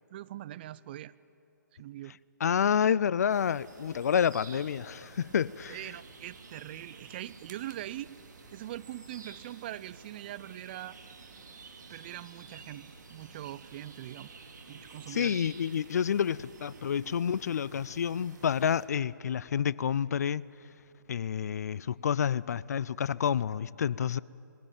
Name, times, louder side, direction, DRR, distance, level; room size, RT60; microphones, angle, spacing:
voice 1, 0.1-1.1 1.8-2.2 5.7-8.1 8.5-11.0 11.9-14.3 14.7-15.4, right 14 dB, 30° right, 0.4 m, -42 dB
voice 2, 2.4-5.8 15.1-20.4 21.1-24.2, left 8 dB, 55° left, 0.4 m, -29 dB
sound 1, 3.3-18.9, right 4 dB, 65° right, 2.5 m, -51 dB
21.0 x 16.5 x 8.9 m
figure-of-eight pair, 135°, 11 cm